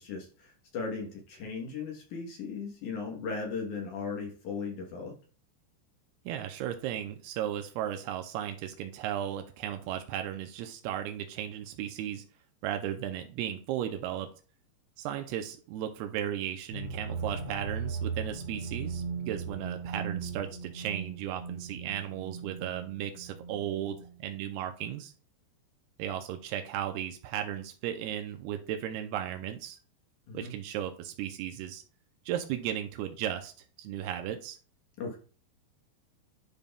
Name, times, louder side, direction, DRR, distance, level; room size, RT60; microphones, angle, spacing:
voice 1, 0.0-5.2 30.3-30.5 35.0-35.2, left 5 dB, 70° left, 0 dB, 1.9 m, -37 dB
voice 2, 6.3-12.2 12.6-14.3 15.0-25.1 26.0-29.8 30.3-31.8 32.3-33.5 33.8-34.6, right 11 dB, 90° right, 6 dB, 2.3 m, -35 dB
sound 1, 16.7-24.4, right 5 dB, 30° right, 1.6 m, -38 dB
12.0 x 5.3 x 2.3 m, 0.39 s
omnidirectional pair, 5.2 m